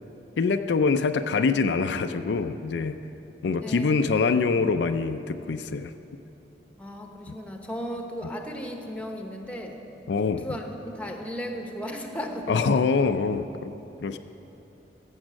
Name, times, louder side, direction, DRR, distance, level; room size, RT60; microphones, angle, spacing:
voice 1, 0.4-3.0 3.4-5.9 10.1-10.5 12.5-13.7 14.0-14.2, left 4 dB, 80° left, 8 dB, 0.4 m, -24 dB
voice 2, 3.6-4.2 6.8-9.8 10.4-12.6, equal, 10° left, 3 dB, 1.0 m, -35 dB
15.0 x 7.2 x 6.3 m, 3.0 s
head